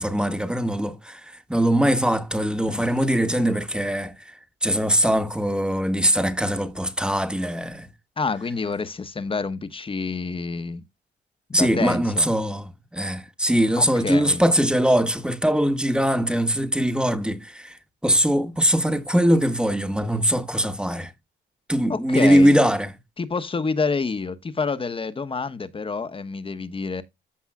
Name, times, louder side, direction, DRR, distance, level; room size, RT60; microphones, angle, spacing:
voice 1, 0.0-4.1 4.6-7.9 11.5-17.7 18.0-21.1 21.7-22.9, equal, 5° right, 1.2 m, -21 dB
voice 2, 8.2-10.8 11.5-12.3 13.8-14.4 21.9-22.6 23.2-27.0, left 4 dB, 25° left, 1.1 m, -28 dB
14.0 x 5.4 x 2.4 m
cardioid pair, 90°, 20 cm